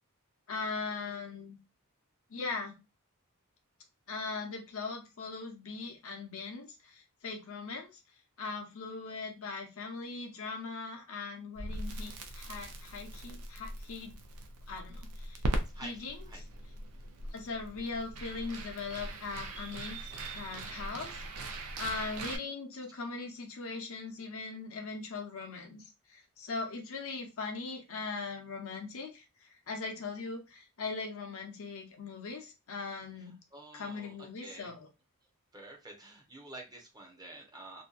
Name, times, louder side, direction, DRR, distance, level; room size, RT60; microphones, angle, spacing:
voice 1, 0.5-1.6 2.3-2.7 4.1-7.9 8.4-14.2 14.7-15.4 15.8-16.2 17.3-21.2 21.8-33.4 33.7-34.9, left 4 dB, 65° left, 3 dB, 0.7 m, -40 dB
Crackle, 11.6-22.4, right 1 dB, 85° right, 0.5 m, -40 dB
voice 2, 15.7-16.4 33.5-34.7 35.5-37.8, right 2 dB, 20° right, 1 dB, 0.7 m, -49 dB
2.7 x 2.2 x 2.3 m, 0.25 s
head